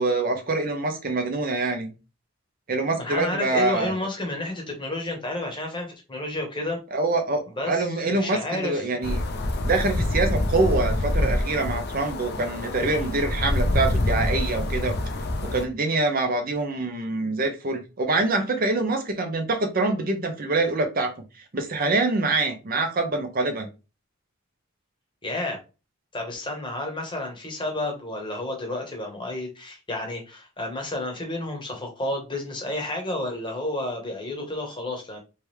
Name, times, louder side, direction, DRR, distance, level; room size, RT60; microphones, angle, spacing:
voice 1, 0.0-1.9 2.7-3.9 6.9-9.2 9.7-15.0 15.5-21.1 21.5-23.7, right 3 dB, 40° right, 0.7 m, -25 dB
voice 2, 3.0-6.8 7.6-9.1 25.2-25.6 26.1-35.2, left 1 dB, 20° left, 1.1 m, -31 dB
sound 1, 9.0-15.6, left 1 dB, 50° left, 0.6 m, -26 dB
3.4 x 3.3 x 3.1 m
head